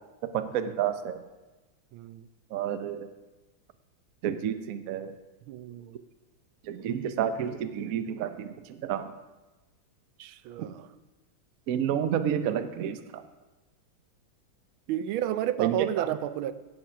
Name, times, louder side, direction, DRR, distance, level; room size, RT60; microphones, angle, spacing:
voice 1, 0.3-1.2 2.5-3.1 4.2-5.1 6.7-9.1 11.7-13.2 15.6-16.1, right 9 dB, 70° right, 10 dB, 0.8 m, -30 dB
voice 2, 1.9-2.3 5.5-6.0 10.2-10.9 14.9-16.5, right 11 dB, 85° right, 13 dB, 1.4 m, -31 dB
16.5 x 5.8 x 5.7 m, 1.2 s
omnidirectional pair, 2.2 m